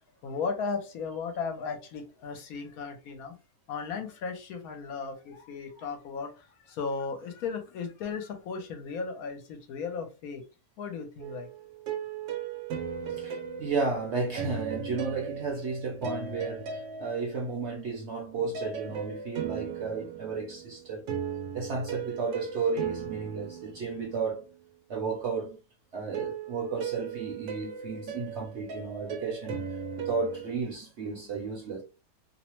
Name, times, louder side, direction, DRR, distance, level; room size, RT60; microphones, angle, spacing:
voice 1, 0.2-3.3 3.7-10.4 10.8-11.5, left 5 dB, 70° left, 1.0 m, -36 dB
sound 1, 11.2-17.8 18.5-24.5 26.1-30.6, right 7 dB, 75° right, 1.1 m, -37 dB
voice 2, 13.1-21.1 21.5-24.4 24.9-25.6 25.9-29.7 30.0-31.8, right 4 dB, 55° right, 0.8 m, -33 dB
2.7 x 2.0 x 2.9 m
omnidirectional pair, 1.7 m